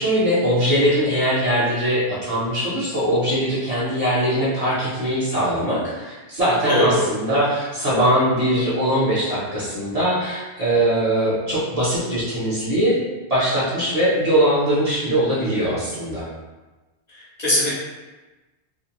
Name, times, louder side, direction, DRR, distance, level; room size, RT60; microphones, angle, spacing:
voice 1, 0.0-13.0 13.3-16.3, equal, 40° right, -10 dB, 0.7 m, -21 dB
voice 2, 6.7-7.0 17.1-17.7, left 1 dB, 45° left, -8 dB, 0.8 m, -21 dB
2.5 x 2.1 x 2.8 m, 1.2 s
omnidirectional pair, 1.1 m